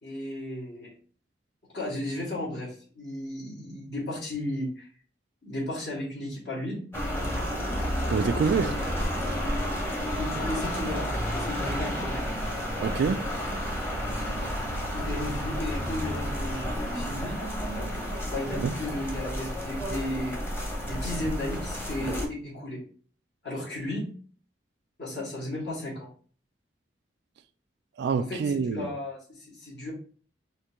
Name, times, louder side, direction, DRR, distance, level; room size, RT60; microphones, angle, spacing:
voice 1, 0.0-0.9 1.7-4.9 5.4-6.9 10.1-12.3 14.9-17.4 18.3-20.4 20.8-22.8 23.4-24.1 25.0-26.1 28.1-29.9, left 1 dB, 65° left, 2.0 m, -34 dB
sound 1, 6.9-22.3, equal, 15° left, 0.9 m, -31 dB
voice 2, 8.1-8.8 12.8-13.3 18.6-18.7 28.0-28.9, right 5 dB, 60° right, 0.3 m, -26 dB
4.4 x 2.9 x 3.5 m
head